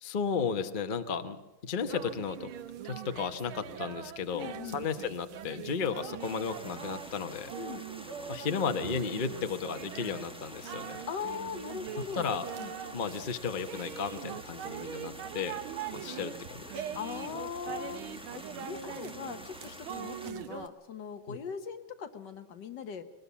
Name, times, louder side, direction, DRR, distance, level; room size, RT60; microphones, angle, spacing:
voice 1, 0.0-2.5 2.8-7.5 8.3-11.0 12.1-12.4 12.9-15.5 15.9-16.8 21.3-21.4, left 6 dB, 35° left, 8 dB, 0.8 m, -34 dB
sound 1, 1.8-20.7, right 9 dB, 90° right, 1.8 m, -42 dB
voice 2, 4.3-4.8 7.6-7.8 11.1-12.2 12.6-12.7 16.0-16.3 16.9-23.0, left 6 dB, 60° left, 8 dB, 1.7 m, -40 dB
sound 2, 6.2-20.3, equal, 5° right, 1.0 m, -48 dB
21.0 x 20.0 x 7.3 m, 1.1 s
omnidirectional pair, 2.2 m